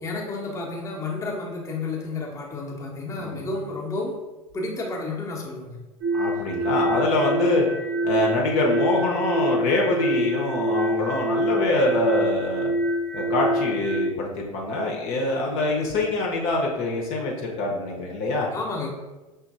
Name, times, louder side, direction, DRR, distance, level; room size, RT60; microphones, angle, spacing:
voice 1, 0.0-4.2 4.5-5.8 18.5-18.9, left 3 dB, 15° left, -2 dB, 0.9 m, -31 dB
sound 1, 6.0-14.1, equal, 50° right, 0.8 m, -26 dB
voice 2, 6.1-7.6 8.0-12.7 13.1-18.5, left 2 dB, 45° left, -1 dB, 0.8 m, -24 dB
5.9 x 2.6 x 2.6 m, 1.1 s
figure-of-eight pair, 75°, 18 cm